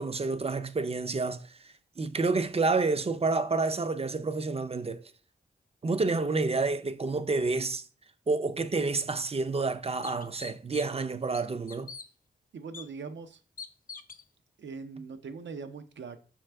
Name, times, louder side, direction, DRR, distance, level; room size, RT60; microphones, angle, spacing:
voice 1, 0.0-5.0 5.8-7.8 8.3-12.0, right 3 dB, 30° right, 0.5 m, -29 dB
sound 1, 9.0-9.1 9.6-9.7 10.0-11.0 11.3-12.1 12.7-12.9 13.6-14.2, left 5 dB, 45° left, 0.5 m, -44 dB
voice 2, 12.5-13.4 14.6-16.2, right 5 dB, 75° right, 0.6 m, -41 dB
4.7 x 3.2 x 3.4 m
cardioid pair, 50°, 19 cm